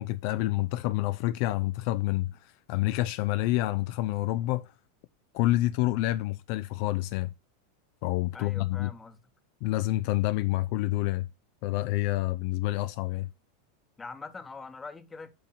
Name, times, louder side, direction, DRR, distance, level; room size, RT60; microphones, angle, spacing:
voice 1, 0.0-4.7 5.3-7.3 8.0-8.9 9.6-11.3 11.6-13.3, left 17 dB, 55° left, 0.3 m, -28 dB
voice 2, 8.3-9.2 14.0-15.3, left 4 dB, 15° left, 0.9 m, -43 dB
7.6 x 3.5 x 5.8 m
hypercardioid pair, 90°, 0 cm